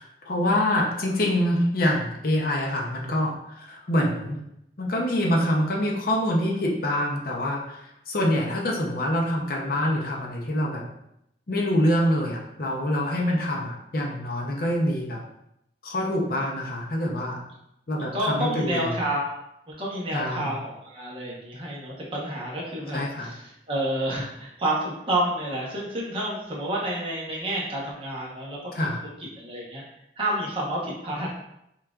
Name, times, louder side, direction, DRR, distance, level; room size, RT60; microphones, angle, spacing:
voice 1, 0.0-4.4 4.8-10.8 11.5-15.2 15.8-17.4 17.9-18.9 20.1-20.5 22.9-23.3 28.7-29.0, left 1 dB, 55° left, -1 dB, 0.7 m, -25 dB
voice 2, 18.1-19.3 19.7-28.7 29.0-29.1 29.4-29.8 30.2-31.3, right 1 dB, 30° right, -4 dB, 1.0 m, -29 dB
5.6 x 2.5 x 2.4 m, 0.79 s
head